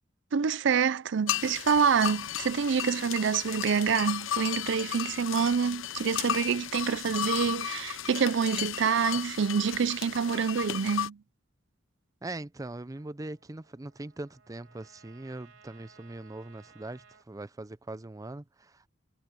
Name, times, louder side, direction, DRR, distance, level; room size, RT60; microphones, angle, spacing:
voice 1, 0.3-11.2, right 6 dB, 65° right, 0.5 m, -27 dB
sound 1, 1.3-11.1, left 10 dB, 85° left, 0.7 m, -34 dB
voice 2, 12.2-18.9, right 2 dB, 20° right, 0.5 m, -41 dB
Trumpet, 12.9-17.3, right 5 dB, 85° right, 3.0 m, -59 dB
head